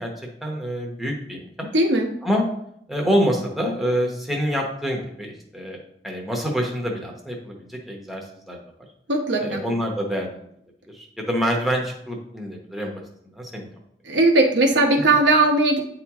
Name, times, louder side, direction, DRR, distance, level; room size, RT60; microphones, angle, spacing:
voice 1, 0.0-1.7 2.2-2.4 2.9-5.8 6.0-8.6 9.4-10.4 10.9-12.9 13.3-13.7, equal, ahead, -1 dB, 0.9 m, -26 dB
voice 2, 1.7-2.1 9.1-9.6 14.0-15.8, right 2 dB, 85° right, 2 dB, 1.1 m, -18 dB
9.0 x 3.0 x 3.6 m, 0.73 s
head